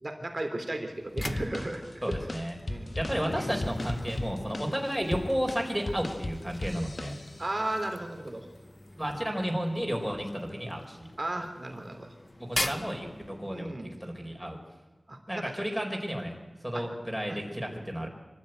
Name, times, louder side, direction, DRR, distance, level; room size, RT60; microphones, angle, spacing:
voice 1, 0.0-2.3 2.6-3.0 4.7-4.8 7.4-8.5 9.0-9.2 11.2-12.1 12.6-12.7 13.5-14.0 15.1-15.5 16.7-16.9 17.3-17.4, right 1 dB, 40° right, 5 dB, 3.2 m, -35 dB
sound 1, 0.8-13.8, left 1 dB, 35° left, 1.2 m, -43 dB
sound 2, 1.2-7.6, left 1 dB, 55° left, 1.4 m, -38 dB
voice 2, 2.0-2.6 3.0-7.1 9.0-11.0 12.5-13.7 14.0-14.6 15.3-16.3 16.6-18.1, equal, 5° right, 1 dB, 4.4 m, -32 dB
sound 3, 3.1-7.9, left 2 dB, 75° left, 2.5 m, -44 dB
24.0 x 14.0 x 9.1 m, 1.2 s
wide cardioid pair, 60°, 0 cm